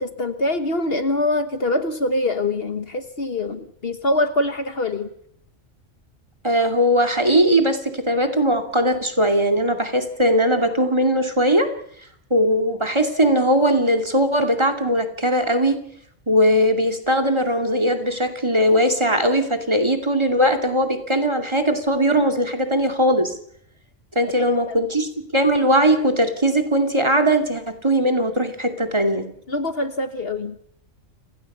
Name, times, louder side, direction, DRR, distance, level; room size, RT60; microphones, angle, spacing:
voice 1, 0.0-5.1 29.5-30.6, left 2 dB, 55° left, 9 dB, 1.6 m, -24 dB
voice 2, 6.4-11.7 12.3-15.8 16.3-23.3 24.2-29.3, equal, 20° right, 8 dB, 2.5 m, -19 dB
29.5 x 17.0 x 5.6 m, 0.66 s
omnidirectional pair, 1.3 m